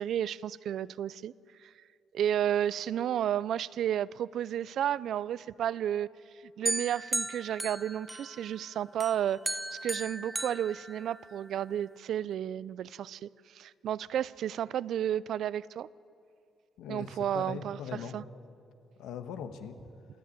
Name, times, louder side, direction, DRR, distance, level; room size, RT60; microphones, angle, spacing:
voice 1, 0.0-1.3 1.6-1.7 2.1-6.1 6.6-15.9 16.9-17.8 18.1-18.2, right 10 dB, 70° right, 0.4 m, -32 dB
sound 1, 6.7-8.6 9.0-11.5, right 1 dB, 10° right, 0.6 m, -36 dB
voice 2, 16.8-18.2 19.0-19.8, left 7 dB, 90° left, 1.4 m, -40 dB
26.5 x 10.0 x 9.5 m
cardioid pair, 90°, 0 cm